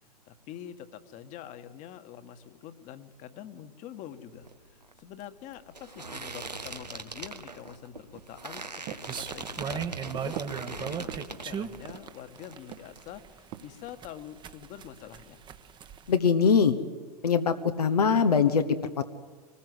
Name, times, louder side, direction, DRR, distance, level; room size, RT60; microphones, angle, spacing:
voice 1, 0.3-9.9 10.2-10.4 10.8-15.4, left 10 dB, 35° left, 10 dB, 1.7 m, -45 dB
sound 1, 4.3-12.1 12.4-13.0, right 3 dB, 90° right, 1.6 m, -41 dB
sound 2, 8.1-12.3 12.7-13.1 13.5-13.7, right 12 dB, 45° right, 1.3 m, -43 dB
sound 3, 9.1-16.2, right 7 dB, 20° right, 1.2 m, -37 dB
voice 2, 16.1-16.8 17.2-19.1, left 6 dB, 70° left, 6 dB, 1.3 m, -23 dB
26.0 x 20.0 x 8.1 m, 1.4 s
figure-of-eight pair, 95°, 20 cm